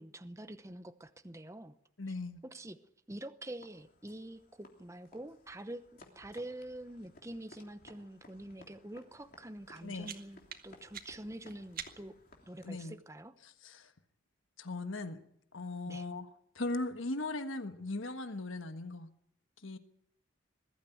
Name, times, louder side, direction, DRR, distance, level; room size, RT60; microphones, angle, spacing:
voice 1, 0.0-1.7 2.4-2.8 3.1-12.2 12.5-13.3 15.9-16.1, right 1 dB, 15° right, 11 dB, 0.8 m, -46 dB
voice 2, 2.0-2.4 9.8-10.1 12.6-13.0 13.4-13.9 14.6-15.2 15.5-16.3 16.5-19.1 19.6-19.8, left 2 dB, 75° left, 9 dB, 1.5 m, -38 dB
sound 1, 3.6-12.9, left 2 dB, 45° left, 3.2 m, -60 dB
sound 2, 9.6-12.3, right 8 dB, 45° right, 1.7 m, -48 dB
21.5 x 13.5 x 9.2 m, 0.70 s
head